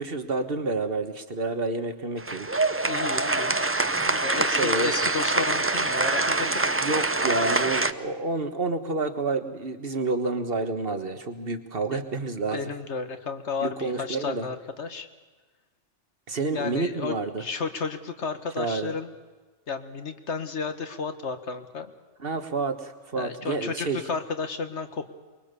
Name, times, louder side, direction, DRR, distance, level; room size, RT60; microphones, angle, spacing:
voice 1, 0.0-2.5 4.5-5.0 6.4-12.6 13.6-14.5 16.3-17.4 18.6-18.9 22.2-24.0, right 3 dB, 50° right, 8 dB, 1.7 m, -29 dB
sound 1, 2.2-7.9, right 2 dB, 15° right, 0.4 m, -25 dB
voice 2, 2.9-3.6 4.1-6.5 11.9-12.0 12.5-15.1 16.5-19.1 19.7-21.9 23.2-25.1, left 5 dB, 70° left, 9 dB, 1.7 m, -33 dB
24.0 x 22.0 x 6.9 m, 1.3 s
omnidirectional pair, 1.2 m